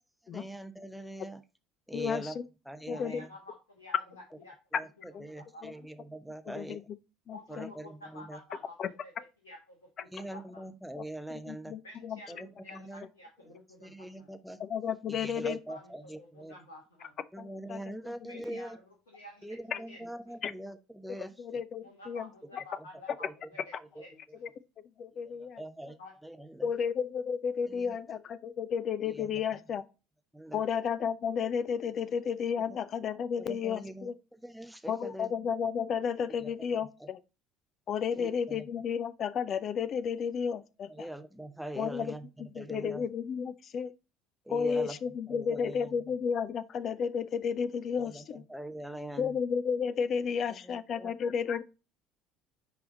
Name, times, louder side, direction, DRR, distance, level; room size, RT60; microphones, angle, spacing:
voice 1, 0.3-1.4 1.9-2.4 2.7-3.3 4.7-6.9 7.5-8.4 10.1-11.8 12.3-13.1 13.8-14.6 15.1-16.5 17.3-18.8 19.4-21.6 22.8-22.9 23.2-23.3 23.8-24.0 25.1-26.0 26.2-26.7 27.7-28.0 29.1-29.4 30.3-30.6 32.7-32.8 33.4-35.3 36.4-37.1 38.1-38.7 40.9-43.1 44.5-45.0 45.3-45.9 48.0-49.4 50.5-51.1, right 1 dB, ahead, 0.7 m, -43 dB
voice 2, 1.9-2.3 2.9-3.2 5.1-5.2 5.6-5.7 6.5-6.8 7.3-7.7 8.8-8.9 11.0-11.1 11.5-12.2 14.6-15.6 17.4-17.8 19.7-19.8 20.4-20.5 21.4-22.3 25.0-25.6 26.6-29.8 30.5-34.1 34.9-37.2 37.9-40.9 41.8-42.1 42.5-43.9 44.5-48.4 49.2-51.6, left 7 dB, 40° left, 0.6 m, -32 dB
voice 3, 2.9-4.5 5.0-5.8 7.3-8.8 9.0-10.6 11.8-14.3 15.7-17.2 18.3-20.4 21.8-24.5 26.0-26.1, left 2 dB, 75° left, 1.6 m, -51 dB
10.0 x 3.5 x 3.8 m
figure-of-eight pair, 60°, 0 cm